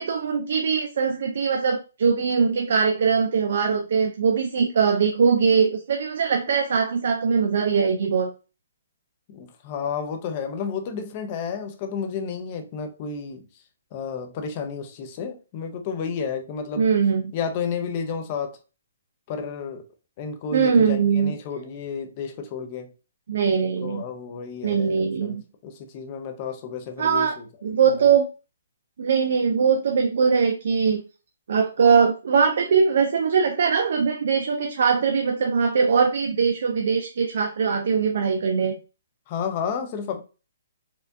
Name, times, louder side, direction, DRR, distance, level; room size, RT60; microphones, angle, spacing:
voice 1, 0.0-8.3 16.8-17.3 20.5-21.3 23.3-24.0 24.6-25.4 27.0-27.3 27.6-28.3 29.0-31.0 31.5-38.7, right 6 dB, 55° right, 0.5 m, -21 dB
voice 2, 9.3-13.5 13.9-16.9 17.3-18.6 19.3-19.9 20.2-22.9 23.8-27.4 27.8-27.9 39.3-40.2, left 6 dB, 30° left, 0.6 m, -31 dB
4.3 x 2.4 x 2.6 m
hypercardioid pair, 165°, 0 cm